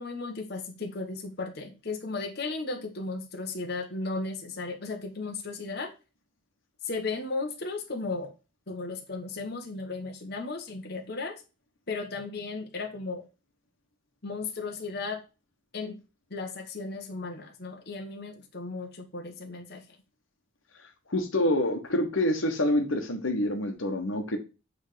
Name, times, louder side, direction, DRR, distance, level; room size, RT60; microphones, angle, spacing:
voice 1, 0.0-5.9 6.8-8.3 8.7-11.4 11.9-13.2 14.2-15.2 15.7-16.0 16.3-19.8, left 3 dB, 55° left, 2 dB, 1.3 m, -35 dB
voice 2, 21.1-24.4, left 1 dB, 85° left, 4 dB, 1.4 m, -27 dB
8.2 x 3.6 x 5.1 m, 0.30 s
head